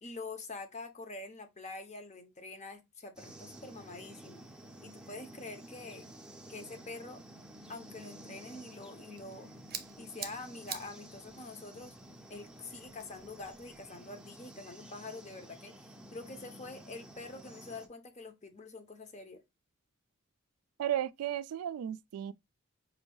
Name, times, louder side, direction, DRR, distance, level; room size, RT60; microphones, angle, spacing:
voice 1, 0.0-4.4 4.8-6.1 6.5-7.2 7.7-9.5 10.0-12.0 12.3-15.7 16.1-19.4, left 3 dB, 30° left, 0.8 m, -46 dB
sound 1, 3.2-17.9, right 1 dB, 5° right, 0.6 m, -52 dB
sound 2, 8.9-13.9, right 9 dB, 45° right, 0.7 m, -48 dB
voice 2, 20.8-22.3, right 11 dB, 80° right, 0.3 m, -34 dB
5.2 x 2.6 x 3.0 m
head